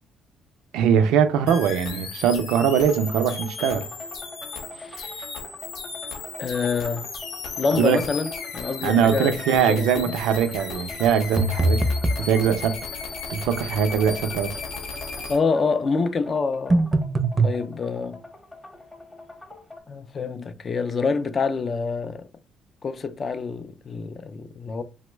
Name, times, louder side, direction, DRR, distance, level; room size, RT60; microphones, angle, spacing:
voice 1, 0.7-3.9 7.8-8.0 8.8-11.9 12.2-12.8 13.3-14.6, right 8 dB, 85° right, 0.4 m, -21 dB
sound 1, 1.5-15.4, left 4 dB, 75° left, 0.8 m, -36 dB
sound 2, 2.7-19.8, left 2 dB, 15° left, 0.7 m, -43 dB
voice 2, 4.8-5.2 6.4-7.1 7.6-9.4 9.7-10.0 15.3-16.9 17.4-18.2 19.9-22.3 22.8-24.8, left 4 dB, 40° left, 0.3 m, -26 dB
sound 3, 11.4-12.3 16.7-17.6, right 2 dB, 20° right, 0.5 m, -21 dB
2.9 x 2.0 x 3.2 m
cardioid pair, 90°, 0 cm